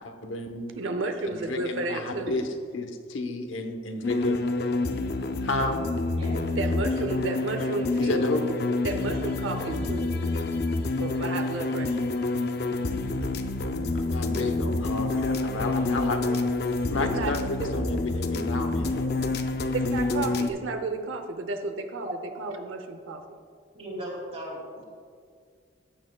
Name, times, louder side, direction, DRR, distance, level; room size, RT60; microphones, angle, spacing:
voice 1, 0.0-0.7 1.5-2.5 2.7-4.4 5.4-5.8 8.0-8.5 14.0-16.4 16.9-19.1, left 2 dB, 80° left, 5 dB, 1.0 m, -31 dB
voice 2, 0.7-2.4 6.6-8.2 8.8-10.2 11.0-12.1 15.1-15.2 17.0-17.3 17.6-17.7 19.7-23.2, right 2 dB, 80° right, 6 dB, 0.7 m, -32 dB
sound 1, 4.0-20.5, left 2 dB, 55° left, 0.6 m, -28 dB
voice 3, 23.7-24.8, equal, 30° right, -3 dB, 2.7 m, -37 dB
14.5 x 9.4 x 2.3 m, 2.1 s
head